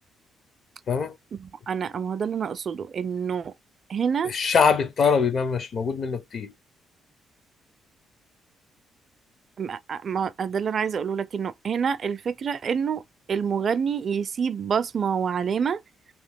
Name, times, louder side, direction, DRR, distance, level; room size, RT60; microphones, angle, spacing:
voice 1, 1.3-3.5 3.9-4.3 9.6-13.0 13.3-15.8, right 7 dB, 50° right, 0.4 m, -27 dB
voice 2, 4.2-6.5, left 6 dB, 50° left, 0.7 m, -23 dB
2.9 x 2.7 x 3.4 m
cardioid pair, 90°, 0 cm